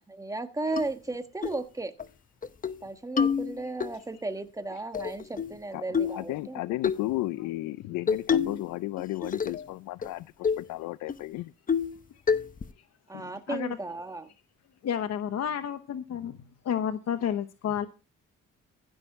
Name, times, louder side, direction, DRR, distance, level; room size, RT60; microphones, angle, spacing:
voice 1, 0.1-1.9 2.8-6.8 13.1-14.3, right 2 dB, 10° right, 1.3 m, -35 dB
sound 1, 0.8-0.9 1.4-1.6 2.0-2.1 2.4-2.8 3.2-3.9 4.9-5.6 5.9-6.3 6.8-7.0 8.1-8.7 9.0-9.7 10.0-10.1 10.4-10.7 11.1-11.2 11.7-12.0 12.3-12.7, left 6 dB, 30° left, 0.7 m, -27 dB
voice 2, 5.7-11.5 13.1-13.3, left 17 dB, 80° left, 0.5 m, -34 dB
voice 3, 14.8-16.4 16.6-17.9, left 9 dB, 60° left, 1.0 m, -30 dB
15.5 x 6.4 x 4.7 m
cardioid pair, 90°, 30 cm